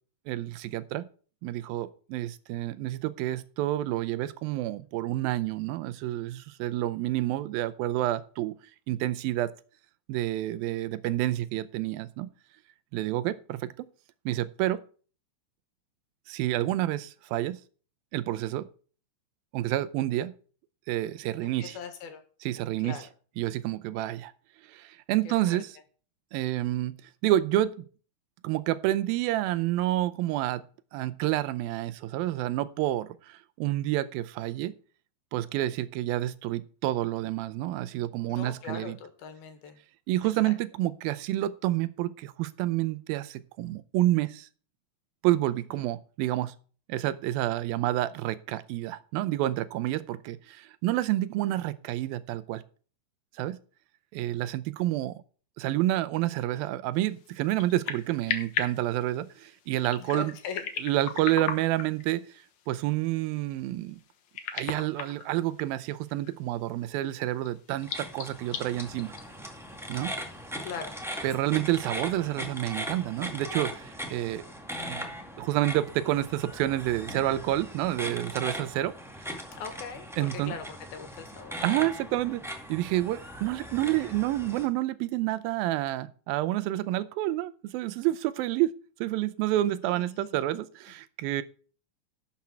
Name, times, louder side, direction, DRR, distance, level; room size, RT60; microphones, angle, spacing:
voice 1, 0.3-1.1 1.4-8.5 8.9-9.5 10.1-12.3 12.9-13.9 14.3-14.8 16.3-17.6 18.1-18.7 19.5-20.3 20.9-21.8 22.4-23.0 23.4-24.3 24.7-25.7 26.3-27.0 27.2-27.9 28.4-30.6 30.9-34.7 35.3-39.0 40.1-44.5 45.2-46.5 46.9-52.6 53.4-53.6 54.1-55.2 55.6-60.3 60.8-64.0 64.5-69.1 69.9-70.1 71.2-74.4 74.8-75.1 75.4-78.9 80.2-80.5 81.6-82.4 82.7-88.7 89.0-91.4, right 15 dB, 85° right, 14 dB, 2.4 m, -29 dB
voice 2, 21.4-22.2 22.8-23.0 25.3-25.6 38.3-39.8 40.2-40.5 45.6-45.9 60.0-60.7 70.6-71.0 79.6-81.6 90.0-90.4, left 6 dB, 85° left, 7 dB, 3.5 m, -41 dB
sound 1, 56.9-71.4, left 8 dB, 60° left, 2.2 m, -40 dB
sound 2, 67.8-84.7, equal, ahead, 0.6 m, -39 dB
11.5 x 7.4 x 4.4 m, 0.39 s
omnidirectional pair, 4.2 m